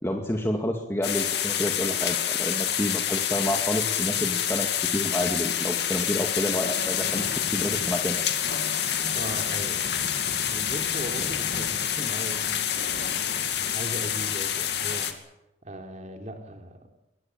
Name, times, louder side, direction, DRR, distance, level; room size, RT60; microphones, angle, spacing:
voice 1, 0.0-8.2, left 1 dB, 15° left, 2 dB, 2.1 m, -29 dB
sound 1, 1.0-15.1, left 9 dB, 65° left, 2.5 m, -27 dB
voice 2, 9.2-10.0 10.5-15.1 15.6-16.9, equal, 40° right, 4 dB, 3.6 m, -38 dB
23.5 x 18.5 x 8.8 m, 0.90 s
head